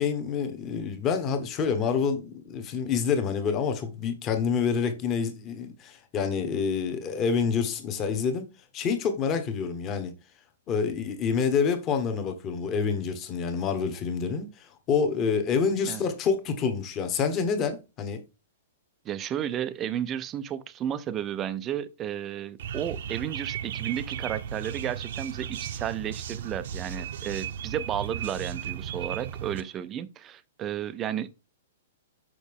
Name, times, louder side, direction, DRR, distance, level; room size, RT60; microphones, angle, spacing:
voice 1, 0.0-8.5 8.7-10.1 10.7-18.2, left 6 dB, 20° left, 1.0 m, -27 dB
voice 2, 19.0-31.3, right 10 dB, 20° right, 0.4 m, -33 dB
sound 1, 22.6-29.6, right 8 dB, 55° right, 0.7 m, -35 dB
6.4 x 5.8 x 3.5 m
hypercardioid pair, 170°, 0 cm